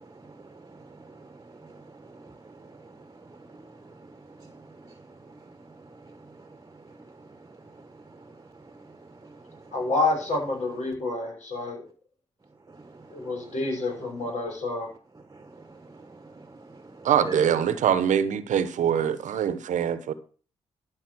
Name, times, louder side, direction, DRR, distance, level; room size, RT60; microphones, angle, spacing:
voice 1, 0.0-9.7 12.7-13.6 15.3-17.7, right 3 dB, 25° right, 1.2 m, -46 dB
voice 2, 9.7-11.9 13.1-14.9, left 2 dB, 60° left, 5.9 m, -28 dB
voice 3, 17.0-20.1, right 9 dB, 75° right, 1.0 m, -23 dB
13.0 x 5.3 x 6.3 m
supercardioid pair, 50°, 13 cm